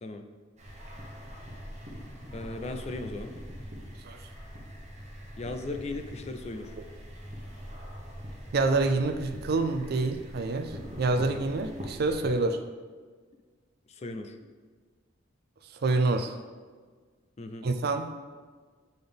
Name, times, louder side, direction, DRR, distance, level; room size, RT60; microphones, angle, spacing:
sound 1, 0.6-12.3, equal, 35° right, 1.1 m, -43 dB
voice 1, 2.3-3.3 5.4-6.7 13.9-14.4 17.4-17.7, left 2 dB, 35° left, 7 dB, 0.4 m, -37 dB
voice 2, 8.5-12.6 15.8-16.3 17.6-18.1, right 3 dB, 55° right, 8 dB, 0.4 m, -27 dB
6.9 x 3.9 x 3.5 m, 1.5 s
head